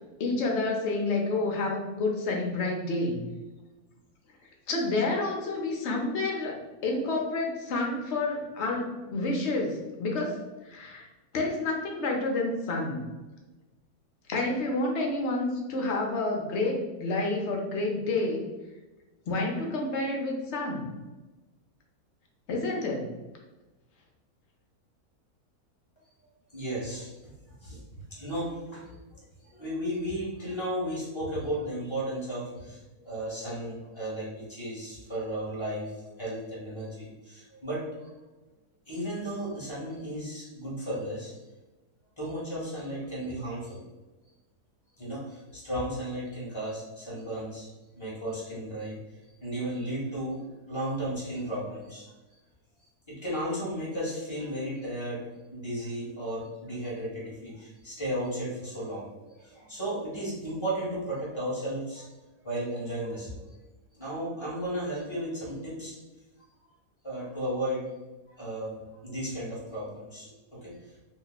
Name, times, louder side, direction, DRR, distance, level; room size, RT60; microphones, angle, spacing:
voice 1, 0.2-3.2 4.7-6.6 6.8-10.4 10.6-11.1 11.3-13.0 14.3-18.4 19.3-20.9 22.5-23.0, left 2 dB, 60° left, 0 dB, 0.8 m, -29 dB
voice 2, 26.5-27.1 27.4-38.1 38.9-41.4 42.2-43.8 45.0-47.7 47.9-52.4 53.1-62.1 62.4-63.5 63.9-66.0 67.0-67.9 68.3-70.9, right 1 dB, 20° left, -6 dB, 0.9 m, -35 dB
2.9 x 2.1 x 3.9 m, 1.1 s
omnidirectional pair, 1.6 m